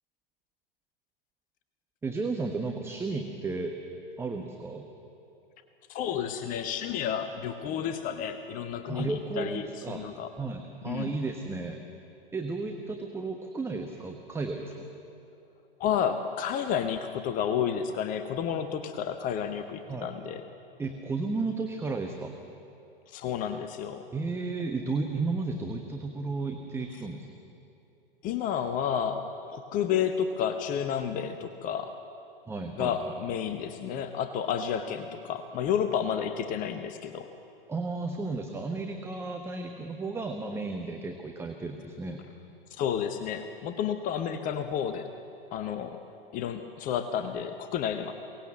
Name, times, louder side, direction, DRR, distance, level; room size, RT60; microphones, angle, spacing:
voice 1, 2.0-3.8 4.2-4.9 8.9-10.0 10.4-11.8 12.3-14.9 19.9-20.1 20.8-22.4 24.1-27.3 32.5-33.1 37.7-42.2, right 3 dB, 10° right, 4 dB, 1.1 m, -33 dB
voice 2, 5.9-10.3 10.8-11.1 15.8-20.4 23.1-24.1 28.2-31.9 32.8-37.3 42.7-45.1 45.5-46.0 46.3-48.1, left 8 dB, 30° left, 9 dB, 0.9 m, -31 dB
23.0 x 18.5 x 7.6 m, 2.9 s
figure-of-eight pair, 100°, 29 cm